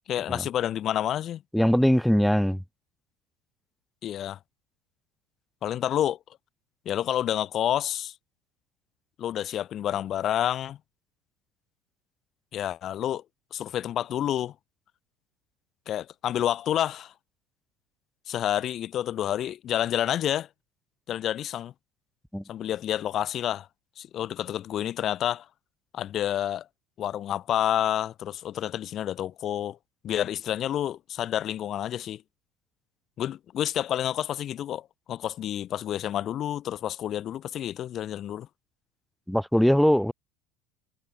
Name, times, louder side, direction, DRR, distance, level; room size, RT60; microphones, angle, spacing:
voice 1, 0.1-1.4 4.0-4.4 5.6-6.2 6.9-8.1 9.2-10.8 12.5-13.2 13.5-14.5 15.9-17.1 18.3-20.5 21.1-21.7 22.5-23.7 24.0-25.5 25.9-26.6 27.0-29.8 30.0-32.2 33.2-38.5, left 11 dB, 45° left, 7.7 m, -29 dB
voice 2, 1.5-2.6 22.3-22.4 39.3-40.1, equal, ahead, 3.3 m, -21 dB
hypercardioid pair, 70°, 0 cm